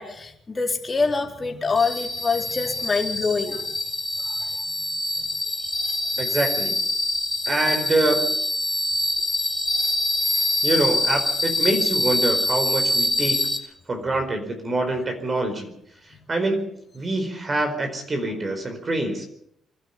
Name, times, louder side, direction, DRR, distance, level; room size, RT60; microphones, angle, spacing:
voice 1, 0.0-3.6 4.3-4.4 5.2-5.3 10.3-10.4 14.1-14.2, left 4 dB, 30° left, 2 dB, 4.1 m, -25 dB
sound 1, 1.8-13.6, left 1 dB, 10° left, 2.6 m, -25 dB
voice 2, 6.2-6.7 7.5-8.2 10.6-13.4 13.9-15.7 16.3-16.7 16.9-19.3, right 2 dB, 30° right, 5 dB, 4.8 m, -25 dB
26.0 x 12.0 x 8.6 m, 0.73 s
cardioid pair, 90°, 0 cm